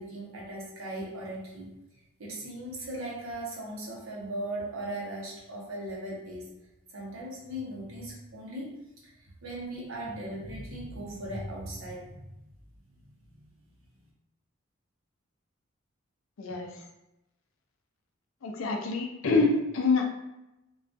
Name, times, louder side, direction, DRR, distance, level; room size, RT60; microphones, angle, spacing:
voice 1, 0.0-1.8 2.2-6.6 6.9-12.4 12.9-13.4, right 1 dB, 90° right, -4 dB, 0.8 m, -38 dB
voice 2, 16.4-16.7 18.4-20.0, left 3 dB, 85° left, 3 dB, 0.4 m, -26 dB
2.3 x 2.2 x 2.5 m, 0.92 s
head